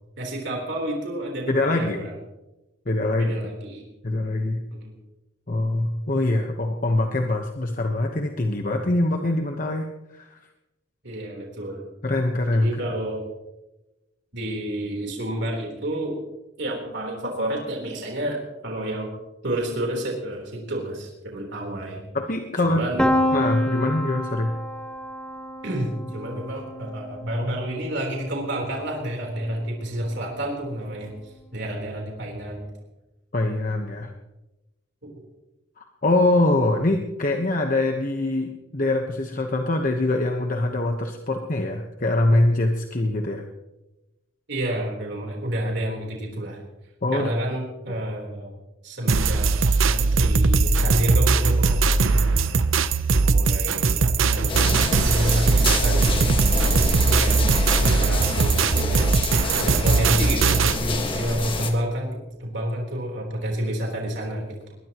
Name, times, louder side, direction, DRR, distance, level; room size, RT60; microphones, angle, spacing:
voice 1, 0.2-2.1 3.1-3.8 4.8-4.9 11.0-11.8 12.5-13.2 14.3-16.1 16.6-19.1 19.4-22.0 22.6-23.1 25.6-32.7 35.0-35.1 44.5-46.6 47.1-48.5 48.8-49.5 49.8-52.6 53.2-57.3 57.7-59.1 59.5-64.8, right 1 dB, 60° right, -1 dB, 3.9 m, -29 dB
voice 2, 1.5-2.1 2.9-3.3 4.0-4.6 5.5-9.9 10.1-10.4 12.0-12.8 22.1-22.8 23.3-24.5 33.3-34.1 35.8-43.4 47.0-47.3 47.9-48.0, left 2 dB, 45° left, 3 dB, 1.2 m, -23 dB
Piano, 23.0-28.8, left 1 dB, 5° left, 1.2 m, -28 dB
sound 1, 49.1-60.8, right 4 dB, 90° right, 0.8 m, -20 dB
sound 2, 54.5-61.7, left 2 dB, 25° left, 1.7 m, -28 dB
21.5 x 21.0 x 3.1 m, 1.0 s
head